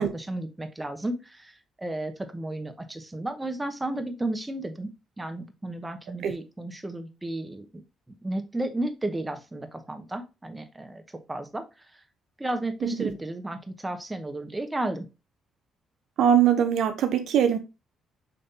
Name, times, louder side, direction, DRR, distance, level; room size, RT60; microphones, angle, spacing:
voice 1, 0.0-1.5 1.8-4.9 5.2-7.8 8.2-11.0 11.3-11.6 12.4-15.0, right 2 dB, 15° right, 0.9 m, -33 dB
voice 2, 12.8-13.1 16.2-17.6, right 9 dB, 70° right, 0.6 m, -22 dB
5.3 x 3.3 x 2.7 m
cardioid pair, 80°, 0 cm